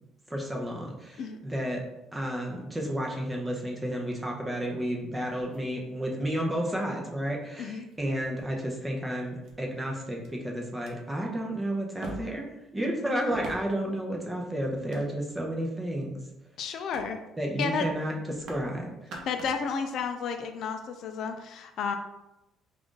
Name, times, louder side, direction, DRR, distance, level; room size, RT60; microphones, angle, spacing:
voice 1, 0.3-1.8 2.1-12.5 12.7-16.2 17.4-19.1, right 1 dB, 10° right, -1 dB, 0.6 m, -32 dB
sound 1, 5.3-6.3 7.2-7.3 7.9-8.5 9.4-9.5 10.2-10.3 10.7-10.9 12.0-12.5 13.3-13.9 14.6-15.5 16.0-16.3 16.9-17.1 17.4-17.6 17.8-18.7 19.0-19.6 20.0-20.1, right 1 dB, 50° right, 0.7 m, -44 dB
voice 2, 16.6-17.2 17.6-17.9 19.2-22.0, left 6 dB, 55° left, 6 dB, 0.3 m, -32 dB
3.7 x 2.4 x 3.7 m, 0.94 s
cardioid pair, 160°, 0 cm